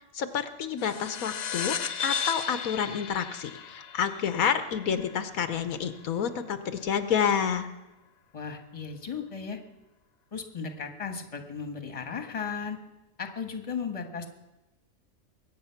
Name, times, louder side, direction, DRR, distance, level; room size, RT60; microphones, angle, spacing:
voice 1, 0.1-7.7, left 7 dB, 80° left, 10 dB, 1.3 m, -29 dB
sound 1, 0.8-5.7, left 7 dB, 55° left, 0.4 m, -35 dB
voice 2, 8.3-9.6 10.3-12.8 13.2-14.3, left 6 dB, 25° left, 6 dB, 1.4 m, -35 dB
22.0 x 8.7 x 5.8 m, 1.0 s
omnidirectional pair, 1.5 m